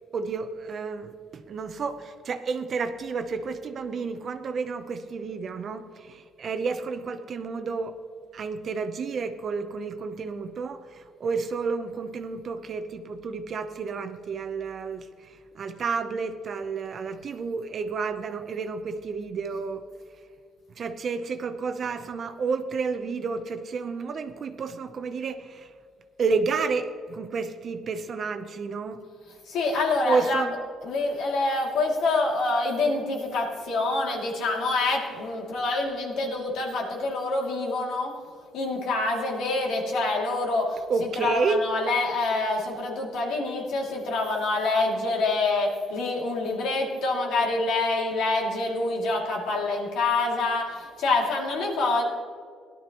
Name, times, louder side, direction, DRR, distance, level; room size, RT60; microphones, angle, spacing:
voice 1, 0.1-8.0 8.3-19.8 20.8-25.7 26.2-29.0 30.0-30.5 40.9-41.6, right 4 dB, 45° right, 9 dB, 0.8 m, -30 dB
voice 2, 29.5-30.5 30.8-38.2 38.5-52.0, left 3 dB, 75° left, -1 dB, 2.6 m, -26 dB
17.5 x 11.5 x 3.0 m, 2.1 s
cardioid pair, 130°, 0 cm